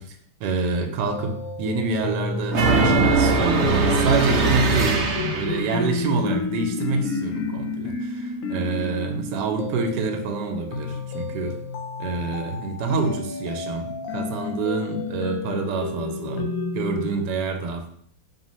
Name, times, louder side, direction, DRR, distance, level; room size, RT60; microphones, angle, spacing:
voice 1, 0.0-5.1 5.3-11.5 12.0-17.9, right 3 dB, 80° right, 5 dB, 1.2 m, -27 dB
sound 1, 1.1-17.1, left 3 dB, 65° left, 0.9 m, -30 dB
sound 2, 2.5-5.7, right 4 dB, 65° right, 0.7 m, -20 dB
4.5 x 2.8 x 3.0 m, 0.63 s
omnidirectional pair, 1.8 m